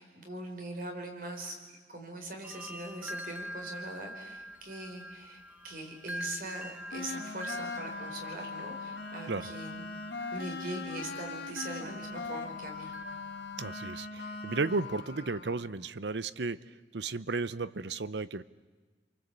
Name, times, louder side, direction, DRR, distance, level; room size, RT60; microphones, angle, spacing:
voice 1, 0.0-1.6 1.9-9.9 10.3-12.9, right 1 dB, 50° right, 4 dB, 4.9 m, -42 dB
sound 1, 2.4-14.0, equal, 10° right, 1.3 m, -45 dB
sound 2, 6.9-15.7, left 3 dB, 70° left, 1.8 m, -40 dB
voice 2, 13.6-16.6 16.9-18.4, right 3 dB, 80° right, 16 dB, 0.8 m, -34 dB
30.0 x 23.5 x 8.4 m, 1.4 s
head